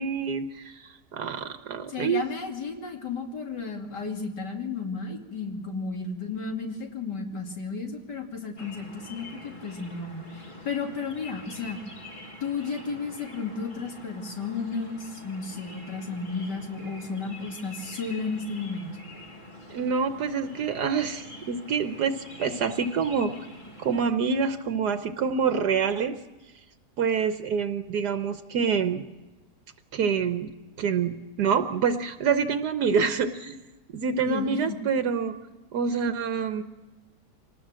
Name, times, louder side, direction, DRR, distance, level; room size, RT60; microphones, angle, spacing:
voice 1, 0.0-2.2 19.7-23.3 23.8-26.2 27.0-29.0 29.9-30.5 30.8-33.6 33.9-35.3 35.7-36.6, right 6 dB, 70° right, 9 dB, 1.4 m, -26 dB
voice 2, 1.9-11.8 12.4-19.0 34.3-34.8, left 4 dB, 75° left, 2 dB, 3.3 m, -33 dB
sound 1, 8.6-24.0, left 1 dB, 30° left, 2.0 m, -45 dB
25.0 x 19.0 x 7.5 m, 1.1 s
omnidirectional pair, 1.8 m